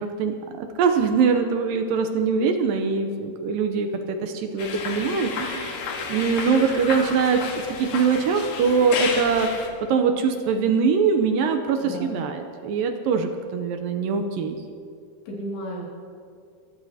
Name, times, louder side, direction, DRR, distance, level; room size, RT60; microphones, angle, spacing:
voice 1, 0.0-5.8 6.1-14.6, right 5 dB, 75° right, 5 dB, 2.2 m, -23 dB
sound 1, 4.6-9.7, left 5 dB, 65° left, 2.9 m, -31 dB
voice 2, 11.8-12.2 15.3-15.8, equal, 85° left, -3 dB, 4.5 m, -33 dB
23.0 x 15.0 x 2.8 m, 2.3 s
omnidirectional pair, 4.6 m